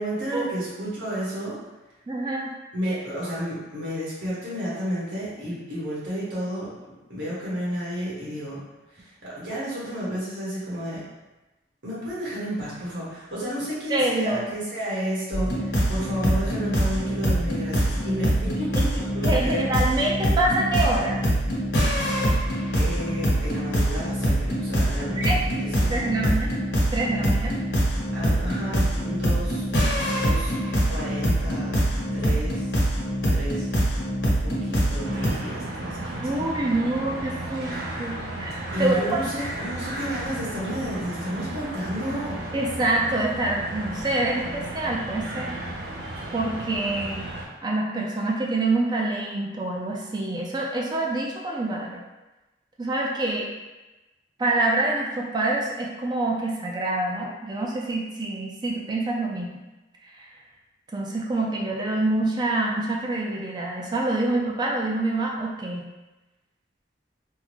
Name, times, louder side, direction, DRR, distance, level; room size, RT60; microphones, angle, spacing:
voice 1, 0.0-1.6 2.7-6.7 7.1-8.6 8.9-11.0 11.8-19.6 22.7-26.3 28.1-29.6 30.2-30.5 30.9-31.9 32.1-32.7 33.3-33.7 34.4-36.3 38.7-42.4, equal, 90° right, -8 dB, 1.4 m, -31 dB
voice 2, 2.1-2.5 13.9-14.4 19.2-21.2 25.2-25.4 25.9-26.5 26.9-27.6 36.2-39.2 42.5-45.6 46.3-47.3 47.6-52.0 52.8-53.5 54.4-59.6 60.0-60.3 60.9-65.9, right 2 dB, 25° right, -2 dB, 0.4 m, -26 dB
sound 1, 15.3-35.3, equal, 70° left, 1.0 m, -24 dB
sound 2, 35.0-47.4, right 1 dB, 60° right, 0.7 m, -34 dB
3.6 x 2.0 x 3.0 m, 1.1 s
head